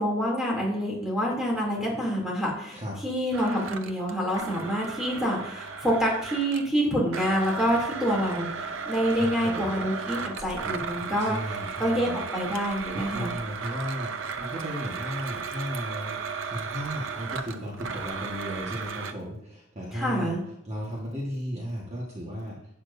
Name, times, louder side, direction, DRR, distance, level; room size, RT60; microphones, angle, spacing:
voice 1, 0.0-13.3 19.9-20.4, equal, ahead, -3 dB, 2.8 m, -27 dB
Domestic sounds home sounds, 3.3-6.7 7.1-19.1, right 5 dB, 65° right, 0.6 m, -35 dB
voice 2, 9.1-9.7 10.6-12.2 12.9-16.2 16.4-20.3 20.6-22.6, equal, 30° right, -3 dB, 1.5 m, -35 dB
11.5 x 8.7 x 2.7 m, 0.76 s
head